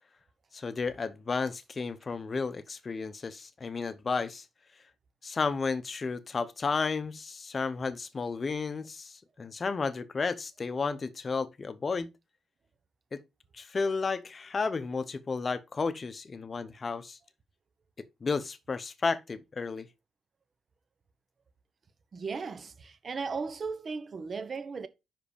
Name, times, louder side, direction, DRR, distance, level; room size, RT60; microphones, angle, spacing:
voice 1, 0.5-4.4 5.2-12.1 13.1-13.2 13.6-17.2 18.0-19.9, left 4 dB, 35° left, 0.8 m, -32 dB
voice 2, 22.1-24.9, right 5 dB, 40° right, 0.9 m, -36 dB
5.5 x 5.1 x 5.0 m
cardioid pair, 90°, 0 cm